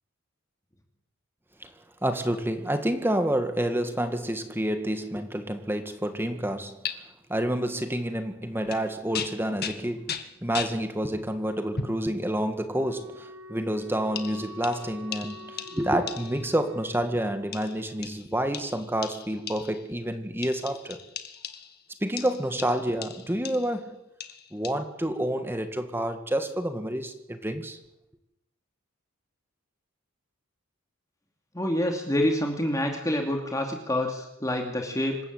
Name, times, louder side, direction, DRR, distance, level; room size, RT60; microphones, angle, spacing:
voice 1, 2.0-6.8 7.3-21.0 22.0-24.0 24.5-27.8, right 1 dB, 10° right, 2.1 m, -29 dB
sound 1, 6.8-6.9 8.6-8.9 9.1-10.8 11.8-12.0 12.8-13.0 14.2-16.5 17.5-19.9 20.4-21.8 22.2-23.8 24.2-24.7, left 7 dB, 50° left, 1.9 m, -38 dB
Wind instrument woodwind instrument, 12.6-17.0, left 1 dB, 85° right, 3.7 m, -45 dB
voice 2, 31.5-35.2, left 1 dB, 15° left, 2.7 m, -27 dB
26.5 x 14.5 x 8.8 m
head